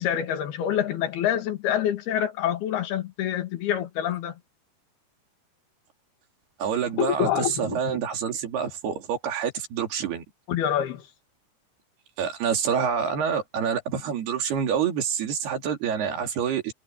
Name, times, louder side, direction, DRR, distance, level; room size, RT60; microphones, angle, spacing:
voice 1, 0.0-4.4 7.0-8.0 10.5-11.1, left 10 dB, 80° left, 3.9 m, -26 dB
voice 2, 6.6-10.2 12.2-16.7, right 7 dB, 85° right, 4.9 m, -27 dB
omnidirectional pair, 4.5 m